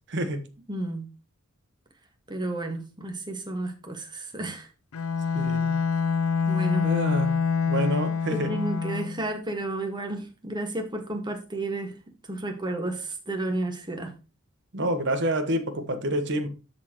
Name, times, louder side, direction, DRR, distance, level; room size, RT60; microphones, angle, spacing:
voice 1, 0.1-0.5 5.3-5.8 6.8-7.4 7.6-8.6 14.7-16.5, right 1 dB, 55° right, 1.3 m, -28 dB
voice 2, 0.7-1.1 2.3-4.7 6.5-6.9 8.3-12.0 12.3-14.1, right 2 dB, 20° right, 1.6 m, -32 dB
Bowed string instrument, 4.9-9.3, left 5 dB, 80° left, 0.5 m, -26 dB
13.0 x 4.4 x 3.0 m
head